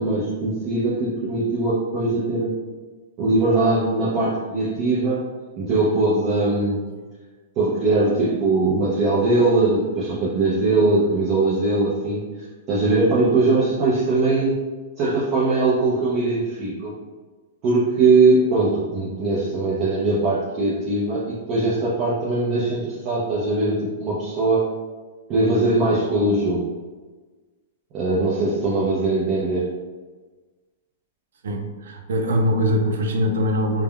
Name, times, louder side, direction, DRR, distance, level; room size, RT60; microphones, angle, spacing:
voice 1, 0.0-2.6 3.2-5.3 5.6-6.8 7.6-14.6 15.0-16.9 17.6-24.7 25.3-26.7 27.9-29.7, right 2 dB, 35° right, -8 dB, 0.5 m, -21 dB
voice 2, 31.4-33.8, equal, 85° right, 3 dB, 0.4 m, -22 dB
3.4 x 2.1 x 2.3 m, 1.3 s
hypercardioid pair, 150°, 0 cm